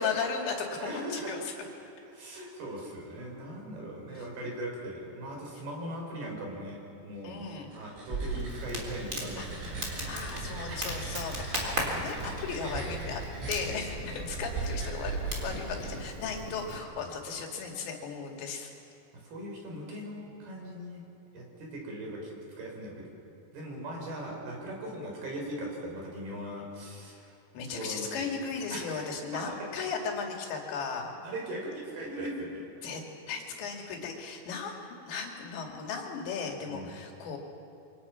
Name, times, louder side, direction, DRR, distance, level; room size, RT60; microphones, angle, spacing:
voice 1, 0.0-1.4 7.2-7.7 9.4-9.5 10.0-13.2 13.5-18.7 27.5-31.1 32.8-33.0 33.3-34.8 35.1-37.4, left 5 dB, 80° left, 1 dB, 4.7 m, -36 dB
voice 2, 0.8-1.7 2.1-10.1 10.7-10.8 13.8-14.4 17.1-17.2 19.1-21.0 21.3-22.3 22.6-23.1 23.5-27.4 27.7-28.3 28.7-29.1 29.3-29.9 31.2-32.6 36.6-36.9, right 1 dB, 60° right, -1 dB, 6.4 m, -40 dB
sound 1, 7.5-16.4, right 3 dB, 75° right, 9.3 m, -39 dB
Crackle, 8.1-16.8, right 1 dB, 20° right, 3.6 m, -38 dB
27.0 x 25.0 x 5.9 m, 2.6 s
omnidirectional pair, 5.1 m